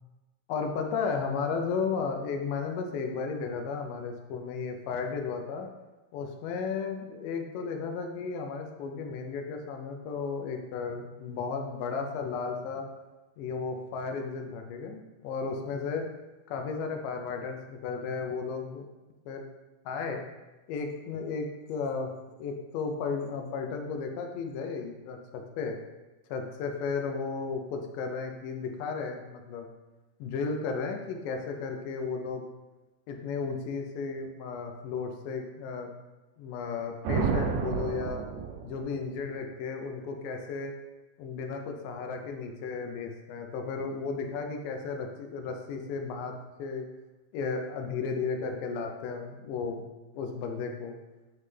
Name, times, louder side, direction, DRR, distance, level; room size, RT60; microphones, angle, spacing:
voice 1, 0.5-5.7 6.1-12.9 13.4-16.0 16.5-18.9 19.3-19.4 19.9-20.2 20.7-22.1 22.4-25.7 26.3-29.7 30.2-32.4 33.1-35.9 36.4-38.2 38.6-40.7 41.2-46.3 46.6-46.8 47.3-49.9 50.1-51.0, left 5 dB, 80° left, 3 dB, 2.1 m, -34 dB
sound 1, 37.0-39.0, right 5 dB, 80° right, 1.9 m, -30 dB
9.3 x 3.2 x 3.2 m, 1.1 s
omnidirectional pair, 4.2 m